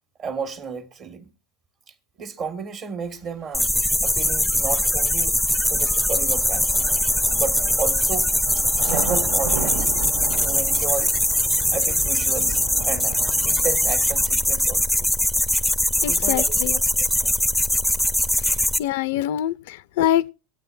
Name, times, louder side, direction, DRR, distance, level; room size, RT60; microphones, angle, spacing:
voice 1, 0.2-1.3 2.2-3.7 4.0-5.4 5.7-6.8 7.3-9.9 10.4-11.1 11.7-15.1 15.5-15.6 16.0-16.8 17.2-17.4, right 5 dB, 40° right, 1.6 m, -32 dB
sound 1, 3.5-18.8, left 1 dB, ahead, 0.6 m, -21 dB
sound 2, 3.7-3.8 4.8-14.3, right 5 dB, 80° right, 1.4 m, -35 dB
voice 2, 16.0-16.8 18.8-20.3, left 12 dB, 80° left, 0.5 m, -24 dB
25.0 x 8.6 x 2.5 m
supercardioid pair, 115°, 0 cm